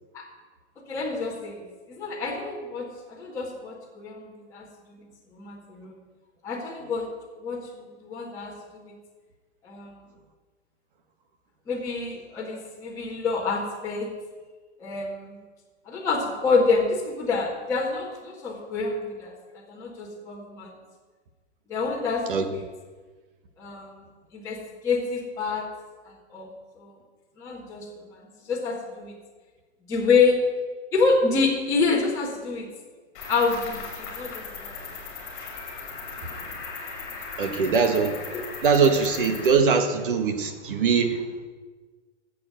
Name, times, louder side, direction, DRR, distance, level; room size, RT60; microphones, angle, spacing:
voice 1, 0.9-5.0 5.3-6.0 6.4-7.1 7.4-8.9 9.6-10.0 11.7-14.1 14.8-15.4 15.9-20.7 21.7-22.6 23.6-24.0 24.3-24.6 24.8-25.7 26.3-26.5 26.8-26.9 27.4-28.2 28.4-29.1 29.9-30.4 30.9-32.7 33.3-34.7 38.3-38.4, left 4 dB, 10° left, -8 dB, 2.0 m, -27 dB
Cricket, 33.1-39.5, left 4 dB, 30° left, 3.5 m, -38 dB
voice 2, 37.4-38.2 38.6-41.2, right 5 dB, 45° right, 7 dB, 1.6 m, -22 dB
14.5 x 7.8 x 7.7 m, 1.4 s
hypercardioid pair, 170°, 35 cm